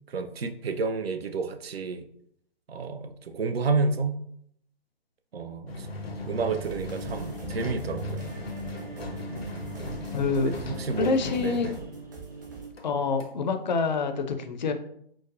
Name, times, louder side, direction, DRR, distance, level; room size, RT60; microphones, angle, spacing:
voice 1, 0.1-2.1 2.7-4.2 5.3-5.9 6.2-8.3 10.4-11.7, right 4 dB, 80° right, 7 dB, 0.5 m, -30 dB
sound 1, 5.7-12.5 12.8-12.9 13.2-13.3, left 1 dB, 80° left, 0.7 m, -37 dB
sound 2, 6.6-12.7, right 3 dB, 20° right, 0.4 m, -41 dB
voice 2, 10.1-10.5 11.0-11.7 12.8-14.7, left 4 dB, 50° left, 7 dB, 0.4 m, -26 dB
4.6 x 2.0 x 2.5 m, 0.70 s
figure-of-eight pair, 130°, 30 cm